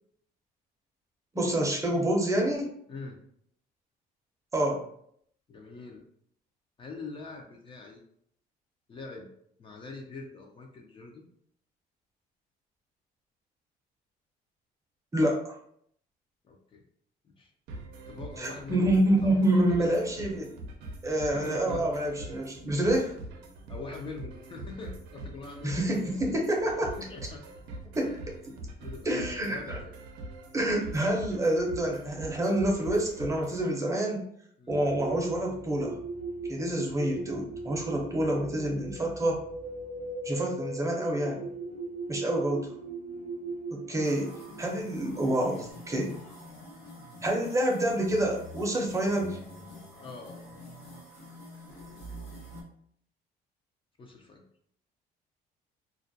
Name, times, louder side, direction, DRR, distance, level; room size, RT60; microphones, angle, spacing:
voice 1, 1.3-2.7 4.5-4.9 15.1-15.6 18.4-20.5 21.0-23.2 25.6-26.9 27.9-28.2 29.1-29.8 30.5-34.2 34.7-36.0 36.5-39.4 40.2-41.5 42.1-42.7 43.7-44.3 44.6-46.1 47.2-49.4, right 1 dB, 20° right, 0 dB, 0.6 m, -27 dB
voice 2, 5.5-6.0 6.8-8.0 8.9-9.3 9.6-11.3 16.5-16.8 17.3-17.5 18.1-18.9 19.2-19.4 19.8-19.9 21.1-21.8 23.7-25.8 26.2-26.3 26.8-27.4 28.0-28.2 28.8-30.0 34.6-34.8 50.0-50.4 54.0-54.4, left 3 dB, 30° left, 1 dB, 0.4 m, -43 dB
sound 1, 17.7-33.7, right 2 dB, 80° right, 0.5 m, -43 dB
sound 2, 34.7-45.7, right 3 dB, 60° left, 1.0 m, -39 dB
sound 3, 44.0-52.6, left 1 dB, 80° left, 1.1 m, -46 dB
2.3 x 2.1 x 2.6 m, 0.67 s
cardioid pair, 110°, 17 cm